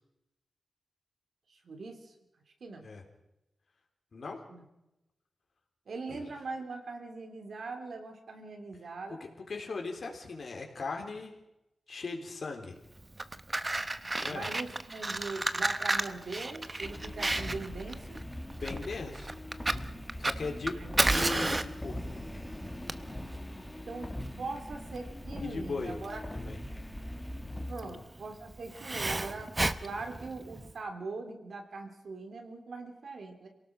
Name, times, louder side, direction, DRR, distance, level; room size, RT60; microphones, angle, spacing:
voice 1, 1.5-2.1 2.6-2.9 4.5-4.6 5.9-9.2 14.3-18.2 20.8-21.2 23.9-26.2 27.7-29.5 29.8-33.5, right 3 dB, 60° right, 5 dB, 3.1 m, -41 dB
voice 2, 9.2-11.3 11.9-12.8 14.2-14.5 18.5-19.3 20.2-22.2 25.4-26.0 26.3-26.6 27.8-28.0, left 4 dB, 50° left, 3 dB, 3.7 m, -38 dB
Fire, 13.0-30.7, right 2 dB, 20° right, 0.8 m, -33 dB
sound 1, 16.8-27.7, left 1 dB, 10° left, 2.1 m, -41 dB
27.5 x 18.0 x 6.0 m, 0.92 s
wide cardioid pair, 150°, 0 cm